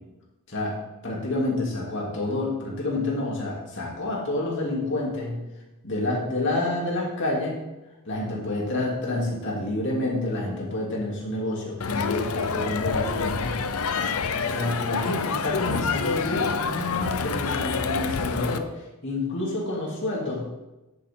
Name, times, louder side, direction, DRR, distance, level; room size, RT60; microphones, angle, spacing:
voice 1, 1.0-5.4 5.8-7.6 8.1-13.5 14.5-18.7 19.0-20.5, left 2 dB, 55° left, -3 dB, 2.9 m, -28 dB
Crowd, 11.8-18.6, left 5 dB, 75° left, 0.7 m, -27 dB
10.0 x 8.8 x 3.8 m, 1.0 s
head